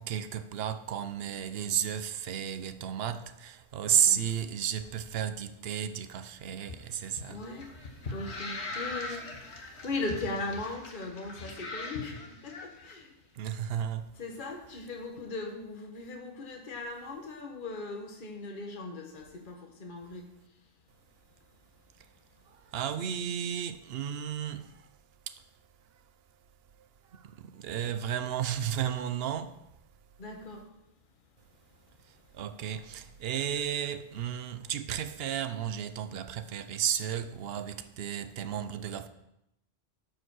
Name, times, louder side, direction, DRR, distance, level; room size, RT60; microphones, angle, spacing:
voice 1, 0.0-7.4 9.1-9.2 13.4-14.1 22.7-24.6 27.5-29.5 32.4-39.1, right 9 dB, 60° right, 0.9 m, -32 dB
sound 1, 6.6-12.9, left 2 dB, 60° left, 1.6 m, -41 dB
voice 2, 7.3-7.7 8.1-13.1 14.2-20.3 30.2-30.7, left 2 dB, 45° left, 1.5 m, -39 dB
12.0 x 5.0 x 6.2 m
omnidirectional pair, 1.3 m